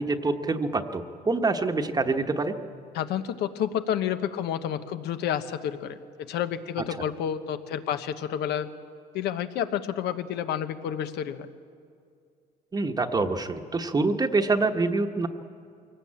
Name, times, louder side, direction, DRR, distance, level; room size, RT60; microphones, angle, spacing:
voice 1, 0.0-2.6 12.7-15.3, right 3 dB, 25° right, 7 dB, 1.1 m, -26 dB
voice 2, 2.9-6.0 6.3-8.7 9.1-11.5, left 9 dB, 80° left, 10 dB, 1.1 m, -30 dB
23.0 x 18.0 x 8.7 m, 2.3 s
cardioid pair, 110°, 17 cm